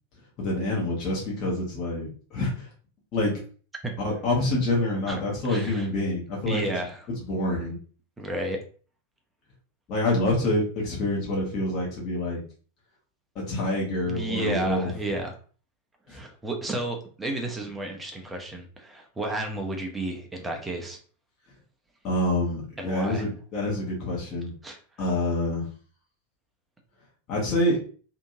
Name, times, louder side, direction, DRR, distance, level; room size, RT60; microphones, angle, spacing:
voice 1, 0.4-2.7 3.1-3.4 4.0-7.8 9.9-12.4 13.3-14.9 16.1-16.2 22.0-24.5 25.0-25.7 27.3-27.8, left 1 dB, 35° left, -4 dB, 1.1 m, -27 dB
voice 2, 5.4-5.9 6.5-7.0 8.2-8.6 14.1-15.3 16.1-21.0 22.8-23.3 24.6-24.8, right 2 dB, 10° right, 3 dB, 0.7 m, -32 dB
2.9 x 2.6 x 2.6 m, 0.40 s
figure-of-eight pair, 90°, 0 cm